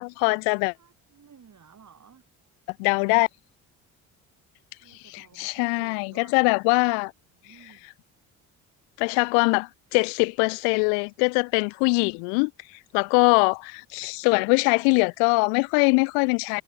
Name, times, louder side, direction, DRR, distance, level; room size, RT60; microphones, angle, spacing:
voice 1, 0.0-0.7 2.8-3.3 5.1-7.1 9.0-12.5 12.9-16.6, left 40 dB or more, 90° left, 0.5 m, -22 dB
voice 2, 0.8-2.3 2.9-3.1 4.8-6.4 7.3-7.9 9.3-9.4 13.2-13.4, right 7 dB, 50° right, 7.4 m, -54 dB
supercardioid pair, 60°, 39 cm